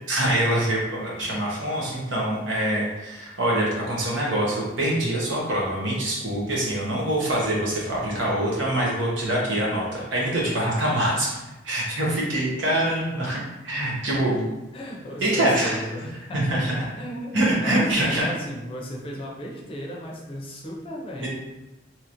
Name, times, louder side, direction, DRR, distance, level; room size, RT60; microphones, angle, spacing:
voice 1, 0.1-11.4 11.6-14.4 15.2-15.8 16.3-16.7 17.3-18.3 21.2-21.3, right 1 dB, 90° right, -4 dB, 1.0 m, -24 dB
voice 2, 14.7-21.3, equal, 30° left, -2 dB, 0.5 m, -35 dB
2.9 x 2.9 x 2.5 m, 1.0 s
head